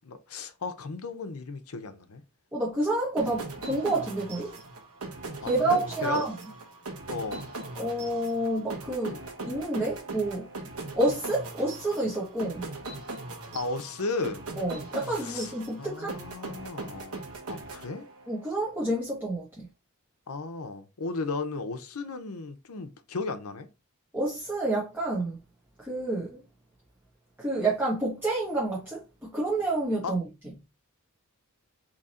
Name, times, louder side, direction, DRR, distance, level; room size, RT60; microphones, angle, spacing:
voice 1, 0.0-2.2 5.4-6.3 7.1-7.4 13.5-14.5 15.2-15.5 15.8-18.1 20.3-23.7 30.0-30.1, left 3 dB, 80° left, 0.7 m, -35 dB
voice 2, 2.5-4.5 5.4-6.4 7.8-10.5 11.0-12.6 14.6-16.1 18.3-19.7 24.1-25.4 25.8-26.4 27.4-30.2, right 2 dB, 10° right, 1.3 m, -29 dB
sound 1, 3.2-18.5, right 2 dB, 85° right, 1.2 m, -40 dB
3.7 x 3.0 x 4.2 m
head